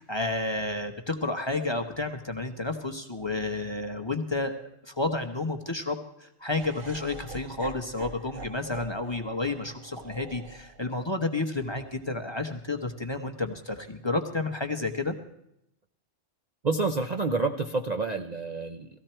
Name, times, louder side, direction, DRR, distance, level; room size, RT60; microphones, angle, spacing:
voice 1, 0.0-15.2, left 2 dB, 20° left, 5 dB, 1.0 m, -31 dB
Laughter, 6.5-12.6, right 2 dB, 80° right, 1.7 m, -46 dB
voice 2, 16.6-19.0, right 3 dB, 40° right, 5 dB, 0.7 m, -28 dB
18.0 x 15.0 x 4.4 m, 0.80 s
omnidirectional pair, 1.3 m